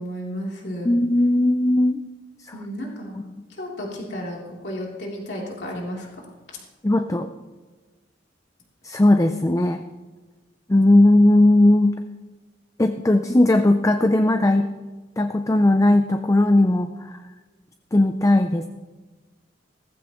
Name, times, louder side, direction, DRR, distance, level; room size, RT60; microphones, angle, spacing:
voice 1, 0.0-0.9 2.5-6.1, equal, 65° left, -3 dB, 3.3 m, -33 dB
voice 2, 0.8-2.0 3.1-3.2 6.8-7.3 8.8-9.8 10.7-12.0 12.8-14.7 15.2-17.2 17.9-18.7, left 1 dB, 15° left, 7 dB, 0.5 m, -18 dB
17.5 x 15.0 x 3.1 m, 1.3 s
head